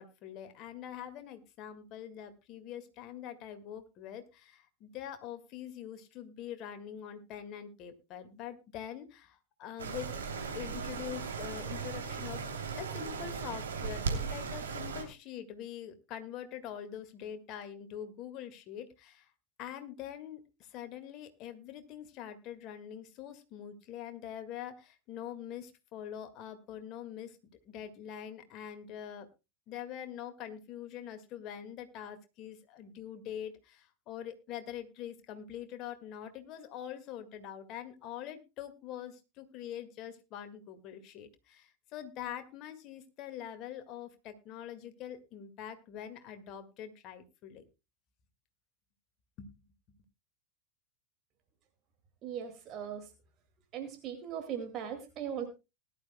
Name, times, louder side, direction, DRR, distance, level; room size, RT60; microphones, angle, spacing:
voice 1, 0.0-10.1 10.5-12.4 12.8-19.3 19.6-27.4 27.7-29.3 29.7-47.6 49.4-49.5, left 10 dB, 40° left, 8 dB, 1.8 m, -44 dB
sound 1, 9.8-15.0, right 5 dB, 70° right, 2.9 m, -37 dB
voice 2, 52.2-53.1 53.7-55.5, right 8 dB, 35° right, 6 dB, 2.2 m, -39 dB
19.5 x 11.5 x 2.2 m, 0.27 s
figure-of-eight pair, 85°, 0 cm